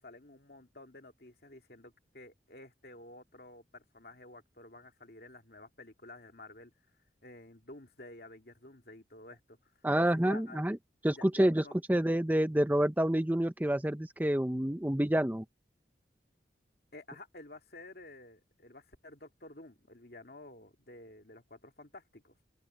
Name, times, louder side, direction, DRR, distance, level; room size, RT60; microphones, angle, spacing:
voice 1, 0.0-6.7 7.2-9.6 10.0-10.6 11.1-11.8 16.9-22.4, left 2 dB, 55° left, 2.7 m, -51 dB
voice 2, 9.8-10.8 11.0-15.4, right 1 dB, 10° right, 0.6 m, -28 dB
open air
head